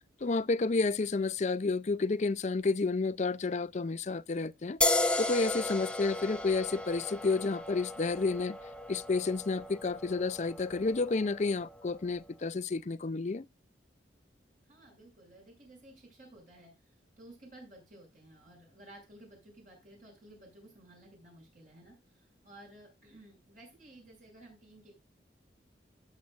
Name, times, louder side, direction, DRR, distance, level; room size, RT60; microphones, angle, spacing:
voice 1, 0.2-4.8 5.2-8.6 8.9-13.5, left 3 dB, 40° left, 0.5 m, -30 dB
sound 1, 4.8-12.1, left 2 dB, 5° left, 0.9 m, -35 dB
voice 2, 14.7-16.7 17.2-24.9, right 1 dB, 45° right, 6.7 m, -55 dB
18.0 x 7.6 x 2.5 m
head